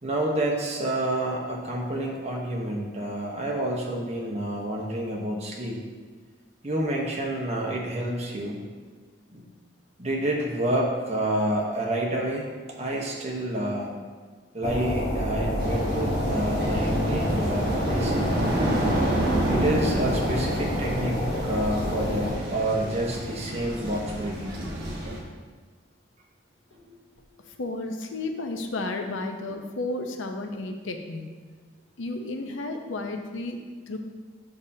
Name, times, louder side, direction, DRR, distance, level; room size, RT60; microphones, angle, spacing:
voice 1, 0.0-5.8 6.6-8.6 9.3-9.4 10.0-13.9 14.5-18.3 19.4-24.6, right 1 dB, 35° right, -1 dB, 1.0 m, -29 dB
sound 1, 14.6-22.3, left 1 dB, 40° left, 1.0 m, -28 dB
sound 2, 15.6-25.2, right 1 dB, 55° right, 1.3 m, -29 dB
voice 2, 27.6-31.3 32.0-34.0, left 2 dB, 85° left, 5 dB, 0.6 m, -32 dB
8.0 x 5.4 x 2.7 m, 1.4 s
head